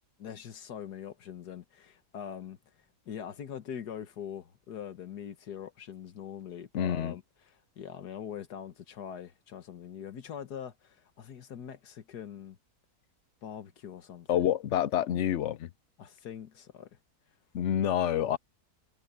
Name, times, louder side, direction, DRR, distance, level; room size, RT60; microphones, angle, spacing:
voice 1, 0.2-2.6 3.1-12.6 13.4-14.5 16.0-16.9, left 8 dB, 85° left, 1.8 m, -43 dB
voice 2, 6.7-7.1 14.3-15.7 17.5-18.4, left 10 dB, 60° left, 0.8 m, -28 dB
omnidirectional pair, 1.7 m